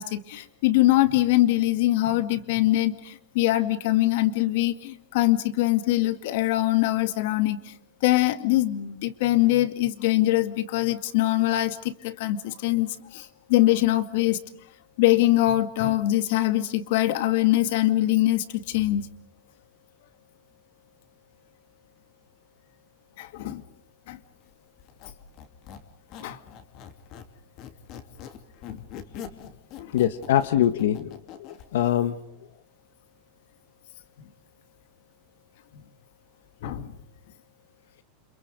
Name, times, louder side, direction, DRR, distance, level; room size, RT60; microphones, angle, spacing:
voice 1, 0.0-7.7 8.0-14.4 15.0-19.1 23.2-23.6 24.1-24.2 26.2-26.4 28.7-28.8 29.8-29.9 36.6-36.9, left 16 dB, 60° left, 11 dB, 2.1 m, -23 dB
Squeak, 24.8-27.3 27.6-31.7, left 8 dB, 40° left, 2.7 m, -43 dB
voice 2, 29.9-31.1 31.4-32.2, left 11 dB, 85° left, 10 dB, 1.4 m, -23 dB
30.0 x 27.0 x 5.3 m, 0.64 s
supercardioid pair, 165°, 0 cm